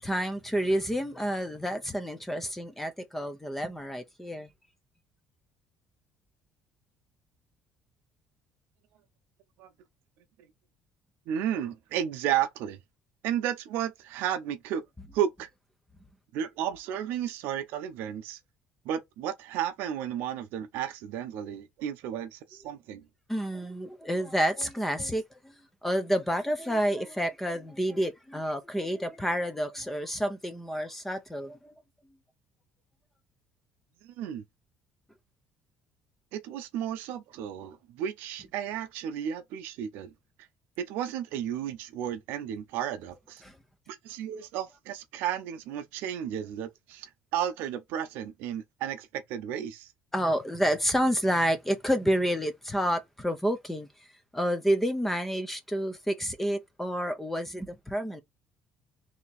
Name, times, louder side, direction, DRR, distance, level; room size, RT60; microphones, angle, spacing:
voice 1, 0.0-4.5 23.3-25.5 25.8-31.7 43.4-43.6 50.1-53.9 54.3-58.2, equal, 5° left, 0.8 m, -29 dB
voice 2, 11.3-12.8 13.2-14.8 15.1-15.5 16.3-18.4 18.8-23.1 34.0-34.4 36.3-40.1 40.4-40.5 40.8-43.4 43.9-49.9, right 10 dB, 85° right, 0.7 m, -33 dB
3.2 x 2.9 x 4.1 m
cardioid pair, 135°, 3 cm